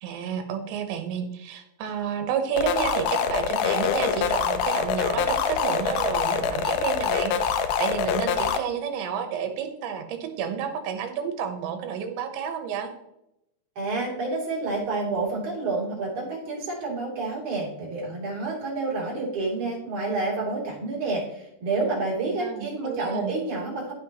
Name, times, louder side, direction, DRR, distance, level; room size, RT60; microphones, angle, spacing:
voice 1, 0.0-7.3 7.8-12.9 22.3-23.3, right 8 dB, 80° right, 7 dB, 3.3 m, -30 dB
sound 1, 2.6-8.6, left 7 dB, 80° left, 2.2 m, -25 dB
voice 2, 13.8-23.9, right 3 dB, 45° right, -4 dB, 4.4 m, -29 dB
15.0 x 5.6 x 3.0 m, 0.83 s
omnidirectional pair, 5.2 m